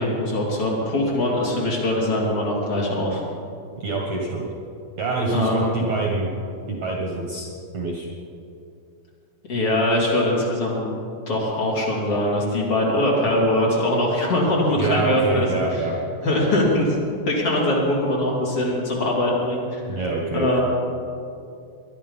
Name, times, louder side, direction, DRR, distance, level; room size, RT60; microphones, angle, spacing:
voice 1, 0.0-3.2 5.3-5.7 9.5-10.9 11.3-15.9 16.2-17.0 17.2-19.8 20.3-20.6, left 1 dB, 35° left, -4 dB, 3.1 m, -22 dB
voice 2, 3.8-4.5 5.0-6.3 6.7-7.5 7.7-8.1 14.7-15.9 19.9-20.6, right 3 dB, 90° right, -1 dB, 1.5 m, -25 dB
21.5 x 11.0 x 5.5 m, 2.5 s
omnidirectional pair, 5.8 m